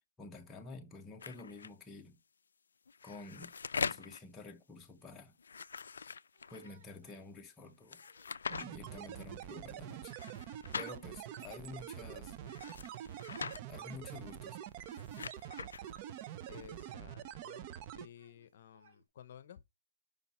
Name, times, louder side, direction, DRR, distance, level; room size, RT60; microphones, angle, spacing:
voice 1, 0.2-2.2 3.0-5.4 6.5-8.0 8.6-10.2 10.7-12.4 13.7-14.6, left 3 dB, 10° left, 0.7 m, -50 dB
sound 1, 1.2-1.7 2.9-4.2 5.4-6.7 7.9-8.7 10.1-10.9 12.4-13.6 14.7-15.8, left 5 dB, 80° left, 0.3 m, -42 dB
Yell, 6.3-7.3 8.0-9.3 10.2-11.5 12.5-13.0 13.3-14.6 15.8-17.3 18.2-19.0, right 4 dB, 50° right, 4.2 m, -67 dB
sound 2, 8.5-18.1, right 11 dB, 25° right, 0.5 m, -46 dB
voice 2, 16.5-19.6, left 9 dB, 45° left, 0.7 m, -55 dB
5.7 x 5.4 x 4.2 m
hypercardioid pair, 165°, 0 cm